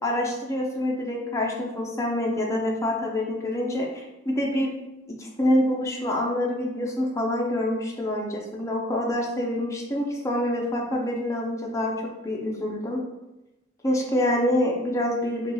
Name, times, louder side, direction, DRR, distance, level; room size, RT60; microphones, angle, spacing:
voice 1, 0.0-4.7 5.1-12.0 12.2-13.0 13.8-15.5, left 1 dB, 15° left, -1 dB, 0.5 m, -26 dB
4.2 x 2.3 x 3.0 m, 0.97 s
head